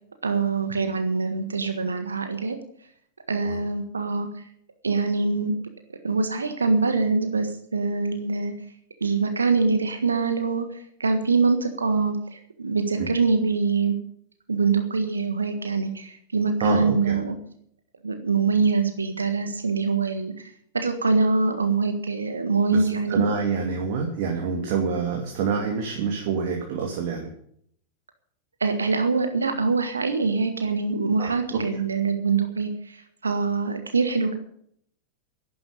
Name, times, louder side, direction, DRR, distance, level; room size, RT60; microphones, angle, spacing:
voice 1, 0.2-2.6 3.3-4.3 4.8-5.5 6.0-8.5 9.0-13.9 14.5-17.4 18.0-20.5 20.7-23.2 28.6-34.4, right 4 dB, 75° right, 7 dB, 1.6 m, -24 dB
voice 2, 16.6-17.2 22.7-27.3 31.2-31.8, right 5 dB, 50° right, 1 dB, 2.6 m, -27 dB
12.0 x 10.5 x 8.4 m, 0.66 s
figure-of-eight pair, 90°, 0 cm